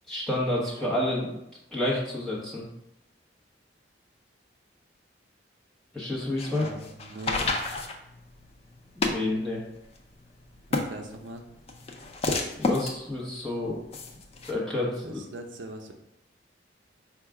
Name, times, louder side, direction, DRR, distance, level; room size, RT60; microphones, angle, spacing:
voice 1, 0.1-1.3 1.7-2.6 5.9-6.7 9.0-9.6 12.6-13.8 14.5-15.2, left 1 dB, 5° left, -6 dB, 1.0 m, -29 dB
sound 1, 6.2-14.5, left 2 dB, 30° left, 0.4 m, -32 dB
voice 2, 6.4-7.5 10.7-11.4 15.0-15.9, right 2 dB, 80° right, 4 dB, 0.5 m, -41 dB
4.6 x 2.4 x 4.8 m, 0.84 s
head